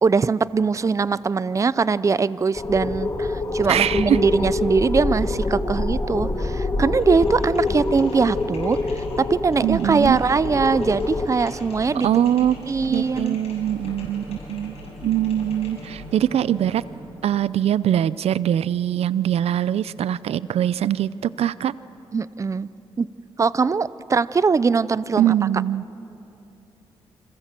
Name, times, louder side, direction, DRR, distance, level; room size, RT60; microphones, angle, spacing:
voice 1, 0.0-8.8 9.2-12.1 12.7-13.4 22.1-22.7 23.0-23.1 23.4-25.3, right 5 dB, 30° right, 17 dB, 0.6 m, -21 dB
sound 1, 2.5-11.3, left 2 dB, 30° left, 2.4 m, -26 dB
voice 2, 3.7-4.2 9.6-10.2 12.0-12.6 12.9-14.7 15.0-16.8 17.2-21.1 21.4-21.7 25.2-25.8, right 11 dB, 80° right, 17 dB, 0.5 m, -22 dB
sound 2, 6.9-16.2, left 4 dB, 75° left, 7.3 m, -41 dB
sound 3, 10.4-17.0, right 2 dB, 60° right, 7.9 m, -43 dB
29.5 x 26.5 x 7.6 m, 2.8 s
cardioid pair, 100°, 10 cm